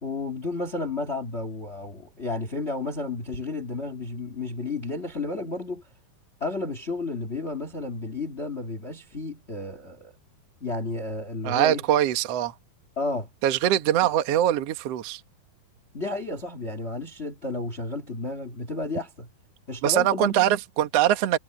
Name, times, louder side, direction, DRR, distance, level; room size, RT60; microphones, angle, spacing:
voice 1, 0.0-5.8 6.4-10.1 10.6-11.8 12.9-13.3 15.9-19.3 19.7-20.4, left 2 dB, 70° left, 0.6 m, -32 dB
voice 2, 11.4-12.5 13.4-15.2 19.8-21.4, right 12 dB, 70° right, 1.5 m, -22 dB
omnidirectional pair, 4.9 m